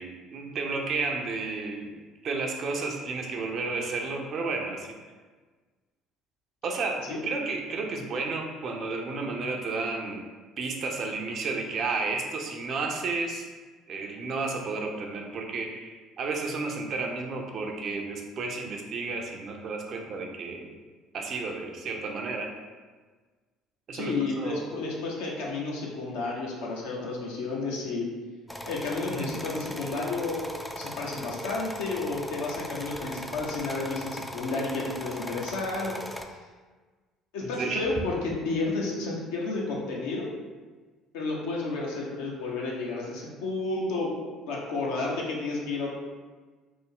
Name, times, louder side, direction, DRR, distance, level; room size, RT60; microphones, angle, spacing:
voice 1, 0.0-4.9 6.6-10.2 10.6-13.5 13.9-15.9 16.2-20.8 21.1-22.5 23.9-24.7 29.1-29.3 37.4-37.8, right 3 dB, 55° right, 1 dB, 0.5 m, -32 dB
voice 2, 23.9-28.1 28.7-30.5 30.8-36.0 36.3-36.4 37.3-40.3 41.1-45.9, left 3 dB, 75° left, -3 dB, 0.7 m, -31 dB
sound 1, 28.5-36.3, left 1 dB, 5° left, 0.3 m, -38 dB
3.4 x 2.0 x 3.5 m, 1.4 s
hypercardioid pair, 60°, 0 cm